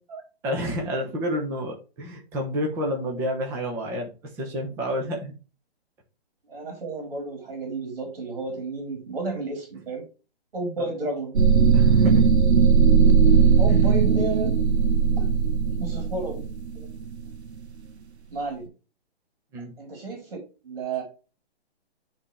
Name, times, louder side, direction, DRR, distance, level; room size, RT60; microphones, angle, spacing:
voice 1, 0.1-5.3 11.7-12.3 13.7-14.0 15.6-15.8 19.5-19.7, equal, 10° right, 2 dB, 0.9 m, -30 dB
voice 2, 6.5-10.0 10.5-11.3 13.6-14.5 15.2-15.3 15.8-16.4 16.8-16.9 18.3-18.7 19.8-20.4 20.6-21.0, right 3 dB, 60° right, 1 dB, 4.0 m, -31 dB
sound 1, 11.4-17.4, right 6 dB, 85° right, 1.2 m, -18 dB
9.8 x 4.2 x 3.3 m, 0.31 s
hypercardioid pair, 170°, 32 cm